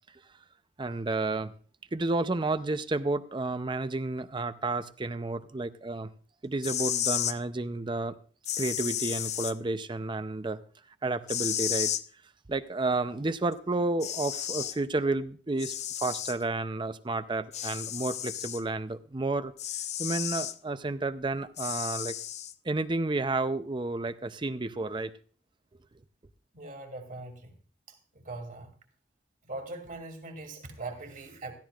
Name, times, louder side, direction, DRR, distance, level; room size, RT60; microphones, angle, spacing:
voice 1, 0.8-1.5 1.9-6.1 6.4-8.2 8.6-10.6 11.0-11.9 12.5-19.5 20.0-22.1 22.6-25.1, right 2 dB, 25° right, 0.6 m, -31 dB
sound 1, 6.5-7.4 8.5-9.5 11.3-12.0 13.5-13.6 14.0-14.8 15.6-16.4 17.5-18.6 19.6-20.6 21.6-22.5, left 10 dB, 40° left, 0.5 m, -32 dB
voice 2, 26.5-27.5 28.2-28.7 29.4-31.5, right 2 dB, 50° right, 2.5 m, -41 dB
16.5 x 14.0 x 2.4 m
head